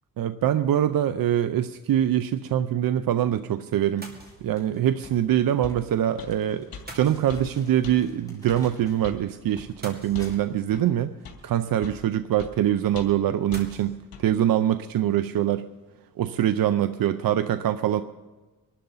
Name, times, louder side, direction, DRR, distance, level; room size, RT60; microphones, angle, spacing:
voice 1, 0.2-4.1 4.4-11.1 11.4-15.7 16.2-18.0, right 11 dB, 75° right, 11 dB, 0.6 m, -24 dB
Crumpling crinkling, 3.7-9.1 9.4-11.4, left 1 dB, 10° left, 4.9 m, -53 dB
sound 1, 4.0-4.7 6.9-7.8 9.8-10.7 13.5-14.0, right 2 dB, 25° right, 2.8 m, -44 dB
sound 2, 5.0-5.2 5.6-5.8 6.2-6.3 6.7-6.8 7.3-7.5 7.8-8.0 8.5-8.6 9.0-9.2 9.6-9.7 10.1-10.3 10.7-10.8 11.2-11.4 11.8-12.0 12.4-12.5 12.9-13.2 13.5-13.6 14.1-14.2, left 5 dB, 85° left, 2.7 m, -40 dB
24.0 x 12.5 x 4.0 m, 1.2 s
wide cardioid pair, 120°, 35 cm